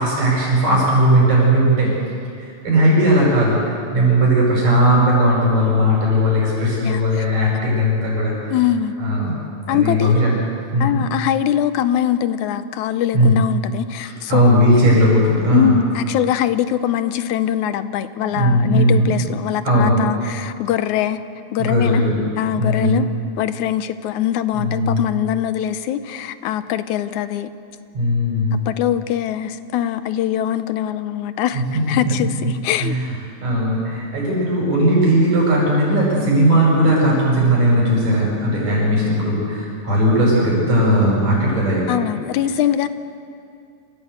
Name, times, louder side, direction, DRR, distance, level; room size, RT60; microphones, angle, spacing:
voice 1, 0.0-1.9 2.6-8.6 9.0-9.3 9.6-10.4 10.7-11.0 13.1-13.4 14.0-15.8 18.2-19.3 19.6-20.0 21.6-22.3 22.6-23.0 24.5-25.0 27.9-28.6 31.5-31.6 32.4-32.5 32.8-33.1 33.4-42.0, equal, 65° right, -6 dB, 7.7 m, -17 dB
voice 2, 6.8-7.3 8.5-9.0 9.7-10.2 10.8-14.5 15.5-21.2 21.5-22.0 22.4-23.1 23.4-27.5 28.7-33.0 41.9-42.9, left 11 dB, 85° left, 12 dB, 2.2 m, -22 dB
27.0 x 16.0 x 8.1 m, 2.5 s
omnidirectional pair, 3.3 m